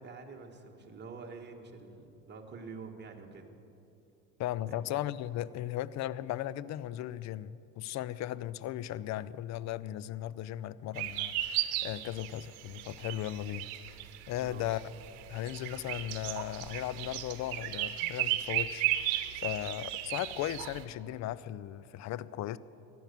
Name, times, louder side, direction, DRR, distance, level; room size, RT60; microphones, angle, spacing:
voice 1, 0.0-3.5 4.7-5.0 14.4-14.7, right 4 dB, 20° right, 1 dB, 1.8 m, -47 dB
voice 2, 4.4-13.7 14.3-14.8 15.3-22.6, left 13 dB, 35° left, 18 dB, 0.5 m, -37 dB
sound 1, 11.0-20.8, right 14 dB, 60° right, 1.1 m, -35 dB
14.5 x 11.0 x 7.0 m, 2.7 s
hypercardioid pair, 75°, 50 cm